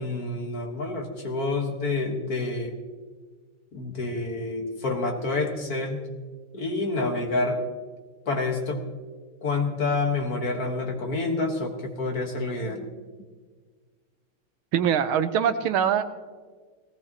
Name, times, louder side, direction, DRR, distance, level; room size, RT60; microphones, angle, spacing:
voice 1, 0.0-2.7 3.7-6.1 6.5-7.6 8.3-8.8 9.4-12.9, left 3 dB, 50° left, 3 dB, 1.8 m, -28 dB
voice 2, 14.7-16.0, right 8 dB, 80° right, 9 dB, 1.6 m, -23 dB
19.0 x 17.5 x 2.9 m, 1.5 s
omnidirectional pair, 2.3 m